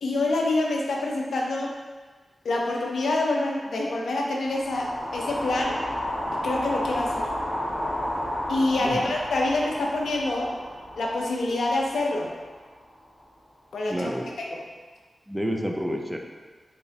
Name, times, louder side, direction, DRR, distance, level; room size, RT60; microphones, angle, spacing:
voice 1, 0.0-1.7 2.4-5.7 6.4-7.3 8.5-10.5 11.0-12.3 13.7-14.1 14.5-14.6, left 2 dB, 90° left, -1 dB, 0.5 m, -26 dB
sound 1, 4.4-12.7, left 1 dB, 55° left, 1.2 m, -32 dB
voice 2, 13.9-14.2 15.3-16.2, equal, 10° right, 2 dB, 0.5 m, -29 dB
4.0 x 3.0 x 2.8 m, 1.4 s
cardioid pair, 50°, 0 cm